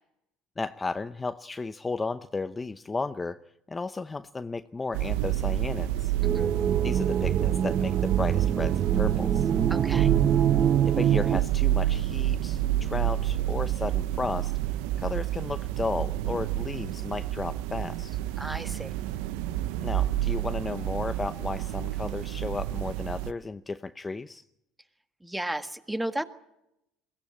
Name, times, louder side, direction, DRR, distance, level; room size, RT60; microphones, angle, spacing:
voice 1, 0.6-3.4 3.7-6.1 6.8-9.5 10.8-14.5 15.0-18.2 19.8-24.4, left 3 dB, 20° left, 10 dB, 0.8 m, -34 dB
sound 1, 4.9-23.3, right 13 dB, 85° right, 0.8 m, -29 dB
sound 2, 6.2-11.4, right 9 dB, 40° right, 0.8 m, -25 dB
voice 2, 9.7-10.1 18.4-18.9 25.2-26.2, right 1 dB, 5° right, 9 dB, 1.8 m, -33 dB
21.5 x 17.0 x 8.7 m, 0.82 s
supercardioid pair, 100°, 0 cm